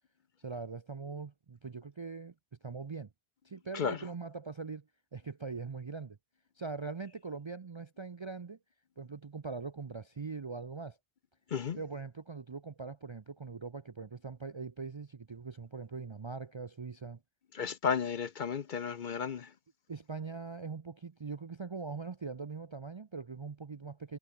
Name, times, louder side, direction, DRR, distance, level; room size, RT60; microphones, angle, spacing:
voice 1, 0.4-2.3 2.6-3.1 3.4-6.2 6.6-8.6 9.0-11.0 11.7-17.2 19.9-24.2, right 4 dB, 35° right, 0.5 m, -42 dB
voice 2, 17.5-19.5, left 6 dB, 50° left, 0.8 m, -33 dB
omnidirectional pair, 1.1 m